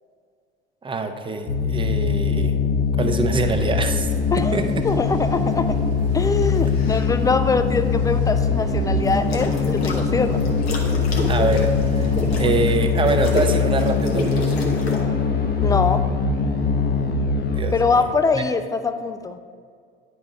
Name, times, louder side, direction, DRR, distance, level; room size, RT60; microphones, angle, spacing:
voice 1, 0.8-2.6 3.0-4.1 4.4-4.9 11.3-14.6 17.5-18.4, right 3 dB, 15° right, 6 dB, 0.7 m, -25 dB
sound 1, 1.5-17.6, left 5 dB, 35° left, 0.9 m, -22 dB
sound 2, 3.4-12.8, right 3 dB, 40° right, 1.2 m, -36 dB
voice 2, 4.8-5.8 6.1-10.4 15.6-16.0 17.7-19.4, left 4 dB, 10° left, 10 dB, 0.4 m, -23 dB
sound 3, 6.4-7.1 9.0-10.0 10.4-15.0, left 2 dB, 85° left, 1.0 m, -30 dB
9.5 x 4.2 x 4.7 m, 2.1 s
hypercardioid pair, 70°, 30 cm